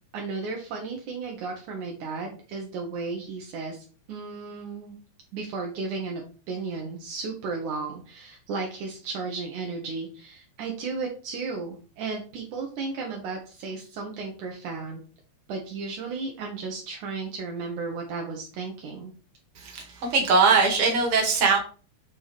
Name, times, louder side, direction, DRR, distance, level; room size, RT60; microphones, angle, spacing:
voice 1, 0.1-5.0 5.3-6.2 6.5-15.0 15.5-19.1, right 4 dB, 70° right, 1 dB, 2.6 m, -34 dB
voice 2, 19.6-21.6, right 4 dB, 45° right, 0 dB, 2.6 m, -21 dB
8.1 x 4.8 x 4.1 m, 0.38 s
omnidirectional pair, 3.8 m